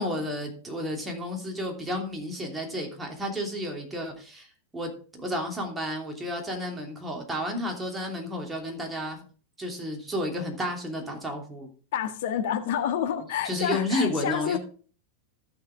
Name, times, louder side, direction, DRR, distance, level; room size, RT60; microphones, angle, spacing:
voice 1, 0.0-4.5 4.7-4.9 5.2-9.2 9.6-11.7 13.4-14.6, left 1 dB, 10° right, 1 dB, 3.0 m, -31 dB
voice 2, 11.9-14.6, left 9 dB, 55° left, 6 dB, 1.5 m, -29 dB
14.5 x 7.0 x 3.6 m, 0.41 s
figure-of-eight pair, 90°, 0 cm